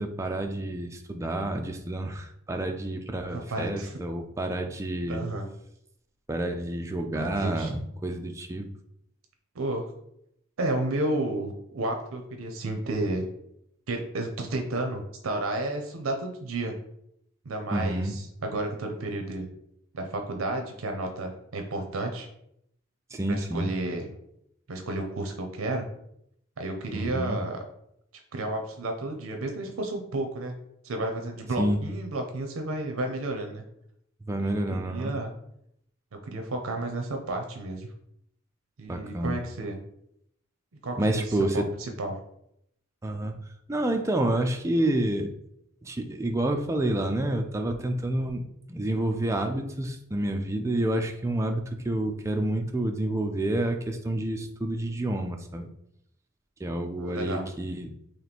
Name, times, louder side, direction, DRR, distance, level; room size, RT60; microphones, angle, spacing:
voice 1, 0.0-5.3 6.3-8.7 17.7-18.2 23.1-23.7 26.9-27.4 31.6-31.8 34.2-35.1 38.9-39.4 41.0-41.7 43.0-45.3 45.8-48.4 48.7-55.7 56.6-57.9, right 1 dB, 15° right, 4 dB, 0.3 m, -29 dB
voice 2, 3.3-4.0 5.1-5.5 7.1-7.7 9.5-9.9 10.6-13.3 13.9-16.8 17.5-19.5 19.9-22.3 23.3-24.1 24.7-25.8 26.6-27.6 28.3-30.6 30.8-33.6 34.4-35.3 36.1-37.9 38.8-39.8 40.8-41.2 42.0-42.2 57.0-57.4, right 2 dB, 75° right, 3 dB, 0.6 m, -32 dB
3.1 x 3.0 x 4.1 m, 0.75 s
head